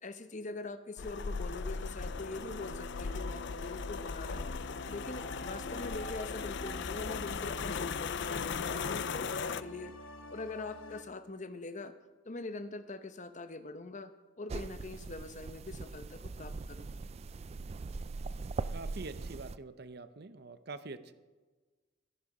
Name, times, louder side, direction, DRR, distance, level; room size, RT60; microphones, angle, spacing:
voice 1, 0.0-4.5 4.9-9.9 10.3-11.9 12.3-14.1 14.4-17.0, left 2 dB, 40° left, 10 dB, 0.9 m, -43 dB
sound 1, 1.0-9.6, left 5 dB, 60° left, 0.5 m, -38 dB
sound 2, 2.0-11.0, equal, 80° left, 1.2 m, -47 dB
sound 3, 14.5-19.6, right 3 dB, 30° right, 0.3 m, -41 dB
voice 2, 18.7-21.1, right 3 dB, 55° right, 12 dB, 0.8 m, -45 dB
14.5 x 11.0 x 5.0 m, 1.3 s
head